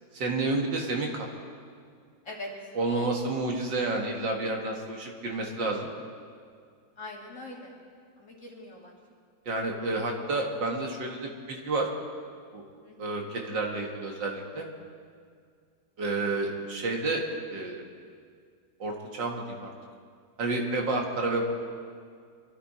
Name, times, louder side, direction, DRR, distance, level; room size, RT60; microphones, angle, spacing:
voice 1, 0.1-1.3 2.8-5.9 9.5-11.9 12.5-12.6 13.0-14.7 16.0-17.2 17.5-17.8 18.8-19.7 20.4-21.4, right 2 dB, 75° right, 1 dB, 2.5 m, -30 dB
voice 2, 7.0-7.7 8.2-8.9 12.8-13.3, left 2 dB, 40° left, -3 dB, 2.7 m, -43 dB
23.5 x 13.0 x 4.4 m, 2.1 s
omnidirectional pair, 2.0 m